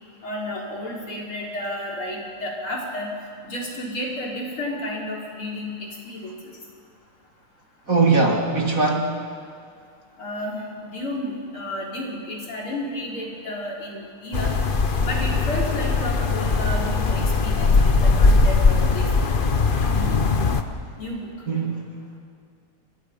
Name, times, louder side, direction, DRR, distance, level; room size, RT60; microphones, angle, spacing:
voice 1, 0.2-3.1 3.4-5.8 6.1-6.3 10.2-14.5 15.0-19.1 19.5-20.1 21.0-21.3, left 1 dB, 70° left, -3 dB, 5.6 m, -32 dB
voice 2, 7.9-9.2 21.5-21.9, right 3 dB, 40° right, 1 dB, 2.4 m, -21 dB
sound 1, 14.3-20.6, left 3 dB, 35° left, 0.9 m, -20 dB
30.0 x 25.5 x 5.6 m, 2.2 s
omnidirectional pair, 2.4 m